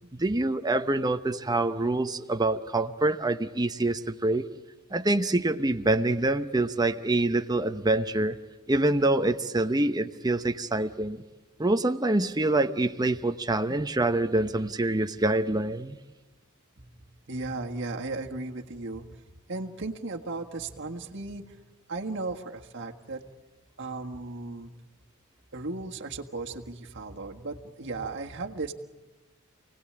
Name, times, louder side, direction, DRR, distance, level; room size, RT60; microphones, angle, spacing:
voice 1, 0.1-4.5 4.9-8.4 8.7-11.2 11.6-16.0, right 2 dB, 20° right, 9 dB, 0.9 m, -26 dB
voice 2, 16.8-21.6 21.9-23.2 23.8-24.7 25.5-28.7, right 3 dB, 55° right, 2 dB, 1.7 m, -36 dB
28.5 x 18.5 x 8.8 m, 1.2 s
head